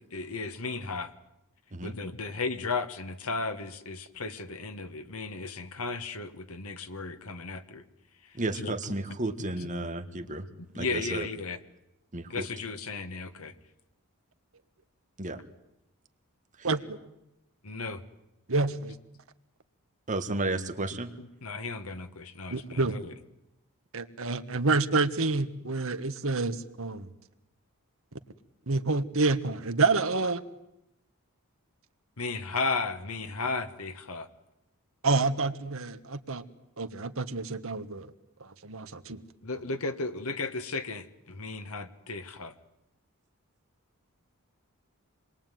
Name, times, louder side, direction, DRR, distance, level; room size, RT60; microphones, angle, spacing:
voice 1, 0.1-1.1 1.8-7.8 8.2-9.0 9.4-9.9 10.5-11.6 12.3-13.5 17.6-18.0 21.2-23.1 32.2-34.3 39.4-42.5, left 3 dB, 75° left, 8 dB, 1.7 m, -35 dB
voice 2, 8.3-10.5 10.7-11.3 12.1-12.5 15.2-15.4 16.6-16.7 20.1-21.1, right 2 dB, 35° right, 8 dB, 1.6 m, -32 dB
voice 3, 16.6-17.0 18.5-19.0 22.5-22.9 23.9-27.1 28.1-28.2 28.7-30.4 35.0-36.4 36.8-38.1 38.4-39.2, right 3 dB, 65° right, 9 dB, 1.5 m, -28 dB
27.5 x 22.0 x 9.3 m, 0.87 s
head